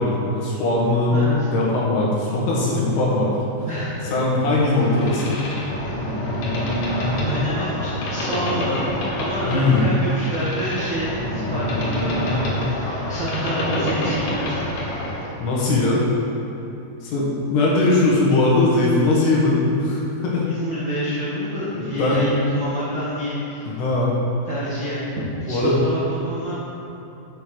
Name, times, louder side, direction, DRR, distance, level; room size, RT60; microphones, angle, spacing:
voice 1, 0.0-1.2 1.5-3.7 4.0-5.4 9.5-9.9 15.4-16.0 17.0-20.5 21.8-22.3 23.7-24.1 25.5-25.8, left 2 dB, 70° left, -5 dB, 3.5 m, -20 dB
voice 2, 1.1-1.5 3.6-4.1 7.1-8.8 9.1-15.0 20.4-23.7 24.5-25.1 25.4-26.5, equal, 90° right, -9 dB, 1.0 m, -28 dB
Boat Water vehicle, 4.8-15.3, left 1 dB, 90° left, 4.0 m, -26 dB
8.6 x 6.8 x 6.4 m, 2.9 s
omnidirectional pair, 5.1 m